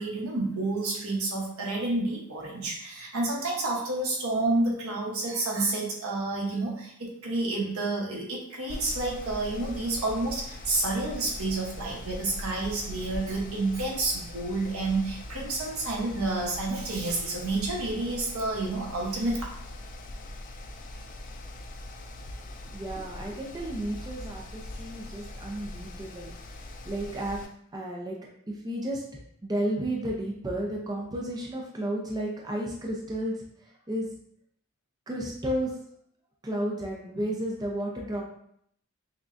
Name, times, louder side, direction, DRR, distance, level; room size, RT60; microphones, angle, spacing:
voice 1, 0.0-19.4, right 2 dB, 75° right, -2 dB, 1.0 m, -29 dB
Mechanical fan, 8.7-27.5, left 1 dB, 40° left, 0.3 m, -41 dB
voice 2, 22.7-26.3 26.9-27.4 27.7-28.2 28.5-33.4 33.9-34.1 35.1-35.7 36.4-38.2, right 1 dB, 20° right, -2 dB, 0.5 m, -32 dB
5.9 x 2.2 x 2.5 m, 0.69 s
head